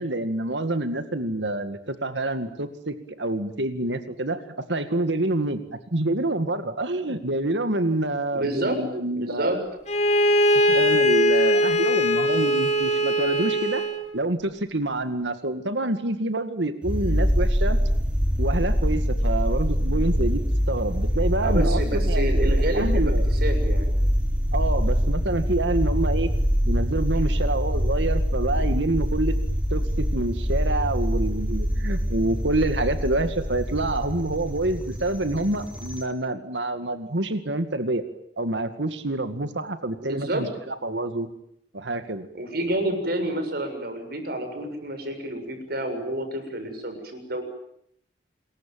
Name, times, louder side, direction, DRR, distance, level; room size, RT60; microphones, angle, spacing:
voice 1, 0.0-4.4 4.7-5.6 5.9-9.6 10.7-13.9 14.1-17.8 18.4-20.4 20.7-23.2 24.5-26.3 26.7-29.3 29.7-38.0 38.4-41.3 41.7-42.3, right 2 dB, 90° right, 9 dB, 2.2 m, -27 dB
voice 2, 8.3-8.8 9.1-9.6 21.4-23.0 23.3-24.0 40.0-40.4 42.3-47.4, right 1 dB, 60° right, 7 dB, 7.1 m, -29 dB
Bowed string instrument, 9.9-14.1, equal, 40° left, 2.5 m, -21 dB
sound 1, 16.8-36.0, equal, 5° right, 3.5 m, -24 dB
27.5 x 23.0 x 9.3 m, 0.72 s
head